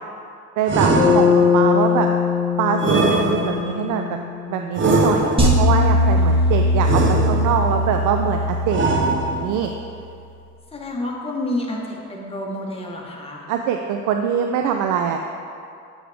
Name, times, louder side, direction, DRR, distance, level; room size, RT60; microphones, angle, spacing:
voice 1, 0.6-1.3 1.5-2.1 2.6-9.7 13.5-15.2, right 7 dB, 80° right, 4 dB, 0.5 m, -23 dB
sound 1, 0.7-1.7 2.8-3.9 4.7-5.7 6.8-7.7 8.7-9.7, right 3 dB, 40° right, 0.8 m, -21 dB
Bass guitar, 1.0-5.0, left 7 dB, 55° left, 1.2 m, -21 dB
sound 2, 5.4-9.7, left 1 dB, 20° right, 1.3 m, -20 dB
voice 2, 10.7-13.4, left 1 dB, 20° left, -2 dB, 1.3 m, -29 dB
7.7 x 6.3 x 3.5 m, 2.5 s
cardioid pair, 90°, 30 cm